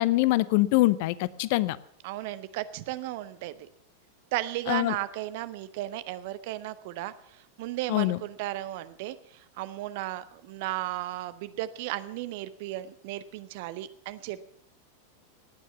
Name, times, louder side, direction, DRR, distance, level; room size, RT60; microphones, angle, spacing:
voice 1, 0.0-1.8 4.7-4.9 7.9-8.2, left 18 dB, 50° left, 20 dB, 0.6 m, -24 dB
voice 2, 2.0-3.7 4.3-14.4, right 15 dB, 50° right, 14 dB, 0.8 m, -35 dB
18.0 x 9.2 x 6.9 m, 0.66 s
figure-of-eight pair, 90°, 0 cm